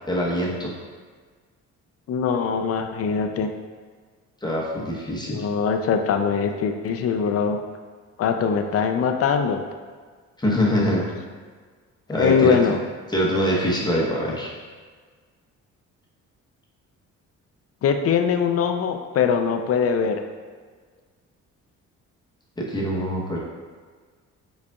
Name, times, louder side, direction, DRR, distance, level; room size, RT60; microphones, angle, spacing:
voice 1, 0.1-0.7 4.4-5.5 10.4-11.0 12.1-12.8 13.1-14.5 22.6-23.4, equal, 15° left, -4 dB, 1.0 m, -24 dB
voice 2, 2.1-3.5 5.2-7.6 8.2-9.6 12.2-12.8 17.8-20.2, left 6 dB, 50° left, 6 dB, 0.5 m, -22 dB
4.9 x 4.1 x 2.3 m, 1.5 s
cardioid pair, 90°, 30 cm